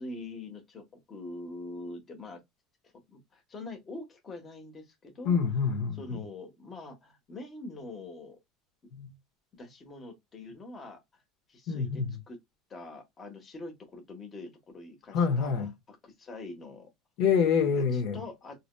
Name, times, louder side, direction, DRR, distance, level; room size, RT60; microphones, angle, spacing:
voice 1, 0.0-2.4 3.1-5.4 5.9-8.4 9.5-11.2 11.5-12.4 12.7-16.9 17.7-18.6, left 2 dB, 25° left, 1.2 m, -44 dB
voice 2, 5.2-6.0 8.9-9.1 11.7-12.1 15.1-15.7 17.2-18.2, left 6 dB, 55° left, 1.1 m, -26 dB
3.9 x 2.9 x 2.2 m
cardioid pair, 155°, 0 cm